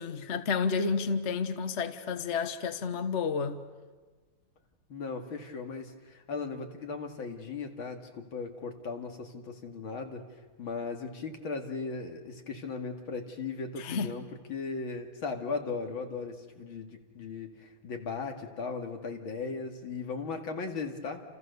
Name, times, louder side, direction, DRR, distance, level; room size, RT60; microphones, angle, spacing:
voice 1, 0.0-3.6 13.8-14.1, left 5 dB, 40° left, 1.4 m, -31 dB
voice 2, 4.9-10.2 10.6-21.2, left 4 dB, 75° left, 3.0 m, -37 dB
29.5 x 28.5 x 6.9 m
omnidirectional pair, 2.2 m